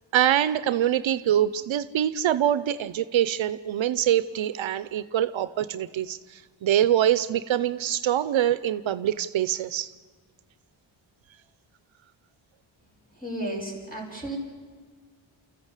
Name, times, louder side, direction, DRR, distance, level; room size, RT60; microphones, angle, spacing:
voice 1, 0.1-9.9, right 11 dB, 75° right, 14 dB, 0.7 m, -24 dB
voice 2, 13.2-14.4, right 1 dB, 20° left, 0 dB, 5.9 m, -33 dB
30.0 x 14.5 x 8.2 m, 1.5 s
wide cardioid pair, 135°, 47 cm